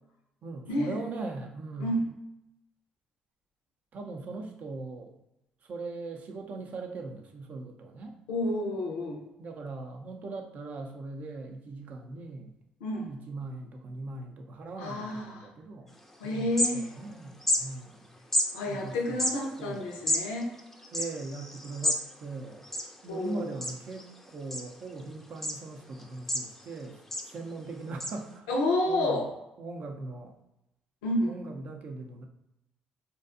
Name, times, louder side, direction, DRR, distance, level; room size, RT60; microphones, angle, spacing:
voice 1, 0.4-1.9 3.9-5.1 5.6-8.1 9.4-12.5 13.1-15.9 16.2-16.5 16.7-18.1 18.7-19.3 19.6-19.9 20.9-22.7 23.0-27.0 27.3-28.5 28.9-29.2 29.6-30.3 31.2-32.3, right 3 dB, 55° right, 3 dB, 0.4 m, -40 dB
voice 2, 1.8-2.1 8.3-9.2 12.8-13.1 14.8-15.5 16.2-16.9 18.5-20.5 23.1-23.5 28.5-29.3 31.0-31.4, left 1 dB, 85° left, 1 dB, 0.4 m, -30 dB
sound 1, 16.0-16.1 16.3-17.1 17.4-17.6 18.3-18.5 19.1-22.0 22.3-22.4 22.6-23.3 23.6-24.0 24.5-25.0 25.4-25.6 26.0-26.7 27.1-27.3 28.0-28.1, left 1 dB, 10° left, 0.4 m, -29 dB
2.6 x 2.2 x 2.4 m, 0.87 s
hypercardioid pair, 55°, 3 cm